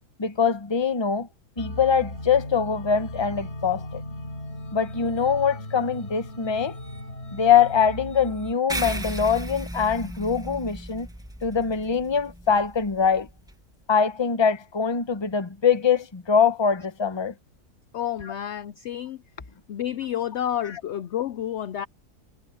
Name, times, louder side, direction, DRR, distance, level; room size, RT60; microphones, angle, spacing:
voice 1, 0.2-1.3 1.6-4.0 4.7-6.7 7.3-11.1 11.4-13.3 13.9-17.3, left 6 dB, 20° left, 0.8 m, -23 dB
sound 1, 1.6-8.5, left 1 dB, 40° left, 5.2 m, -37 dB
sound 2, 8.7-13.5, right 1 dB, 5° right, 1.1 m, -35 dB
voice 2, 17.9-19.2 19.7-21.9, left 11 dB, 70° left, 0.6 m, -30 dB
omnidirectional pair, 1.7 m